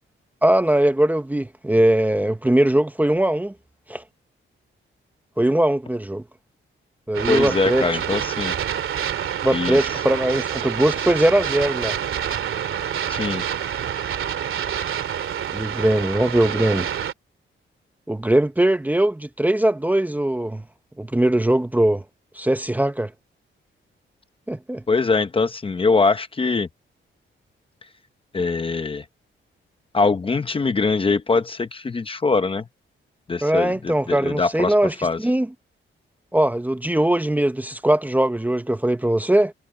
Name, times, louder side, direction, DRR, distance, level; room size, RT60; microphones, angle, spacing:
voice 1, 0.4-3.5 3.9-4.0 5.4-6.2 7.1-7.9 9.4-12.0 15.5-16.9 18.1-20.6 21.0-22.0 22.4-23.1 24.5-24.8 33.4-34.9 35.2-35.5 36.3-39.5, right 1 dB, 10° right, 0.8 m, -20 dB
sound 1, 7.1-17.1, right 9 dB, 75° right, 2.5 m, -27 dB
voice 2, 7.3-8.6 9.5-9.8 13.1-13.4 24.9-26.7 28.3-29.1 29.9-32.7 33.3-34.7 35.0-35.2, left 4 dB, 25° left, 0.8 m, -22 dB
wide cardioid pair, 155°, 21 cm